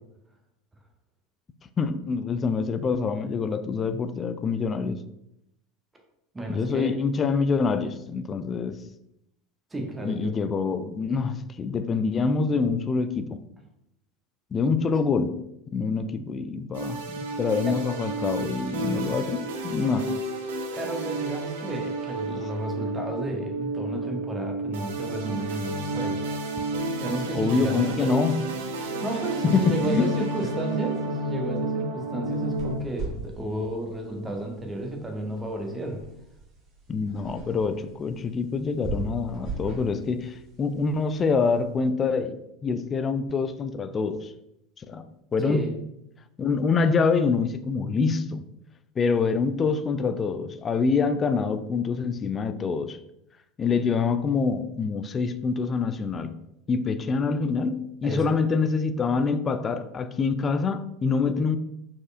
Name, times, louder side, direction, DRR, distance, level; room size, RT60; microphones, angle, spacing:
voice 1, 1.8-5.0 6.5-8.8 10.0-13.4 14.5-15.4 15.7-20.2 22.4-22.5 27.3-28.4 29.4-30.2 36.9-44.3 44.8-45.6 46.4-48.4 49.0-53.0 53.6-56.4 56.7-61.6, left 5 dB, 25° left, 11 dB, 0.3 m, -26 dB
voice 2, 6.3-7.0 9.7-10.3 17.6-17.8 20.8-26.2 27.0-28.1 29.0-36.1 45.4-45.7 58.0-58.2, right 1 dB, 15° right, 3 dB, 0.9 m, -32 dB
sound 1, 16.7-32.7, right 2 dB, 65° right, 0.6 m, -31 dB
sound 2, 32.3-41.6, right 3 dB, 40° right, 1.4 m, -40 dB
4.8 x 4.2 x 2.5 m, 0.82 s
figure-of-eight pair, 75°, 0 cm